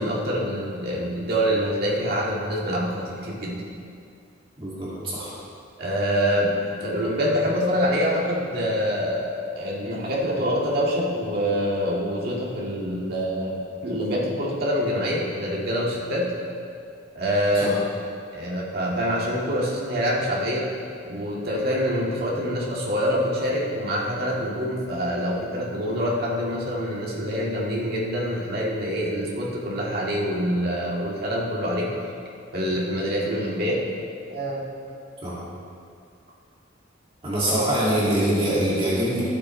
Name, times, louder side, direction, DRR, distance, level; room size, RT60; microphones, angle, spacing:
voice 1, 0.0-3.6 5.8-16.3 17.2-17.8 18.3-20.7 21.0-31.9 32.5-33.8 34.3-34.6, equal, 55° right, -4 dB, 1.9 m, -25 dB
voice 2, 4.6-5.3 17.6-17.7 35.2-35.4 37.2-39.2, right 1 dB, 30° right, -8 dB, 2.2 m, -24 dB
14.0 x 8.0 x 3.2 m, 2.4 s
head